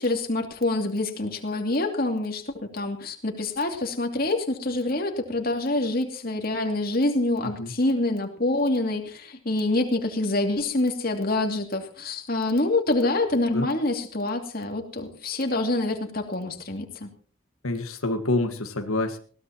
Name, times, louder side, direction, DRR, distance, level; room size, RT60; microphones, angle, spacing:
voice 1, 0.0-17.1, left 2 dB, 45° left, 3 dB, 2.6 m, -26 dB
voice 2, 7.4-7.7 13.0-13.1 13.5-13.7 17.6-19.2, left 2 dB, 90° left, 6 dB, 1.7 m, -27 dB
20.5 x 16.5 x 3.0 m, 0.42 s
head